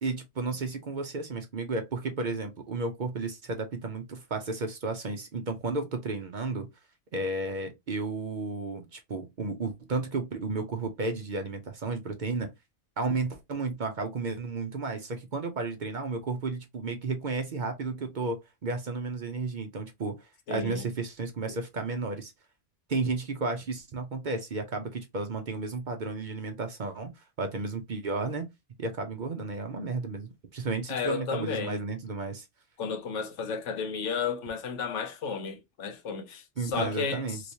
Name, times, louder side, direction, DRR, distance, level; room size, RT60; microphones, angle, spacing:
voice 1, 0.0-6.7 7.1-12.5 13.0-22.3 22.9-28.5 28.8-32.5 36.6-37.4, right 3 dB, 50° right, 0.6 m, -33 dB
voice 2, 20.5-20.8 21.5-21.6 30.9-31.8 32.8-37.4, left 5 dB, 85° left, 1.1 m, -33 dB
3.1 x 3.0 x 2.7 m
omnidirectional pair, 1.2 m